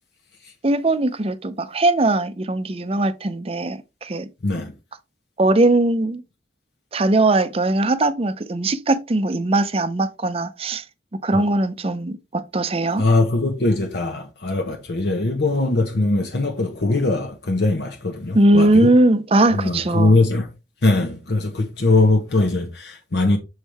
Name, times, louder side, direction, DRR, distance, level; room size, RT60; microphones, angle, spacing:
voice 1, 0.6-4.3 5.4-6.2 6.9-10.8 11.2-13.0 18.3-20.1, right 2 dB, 30° right, 0.6 m, -20 dB
voice 2, 4.4-4.7 11.3-11.4 13.0-18.9 19.5-20.5 20.8-23.4, left 2 dB, 60° left, 0.9 m, -21 dB
6.6 x 4.5 x 3.4 m
head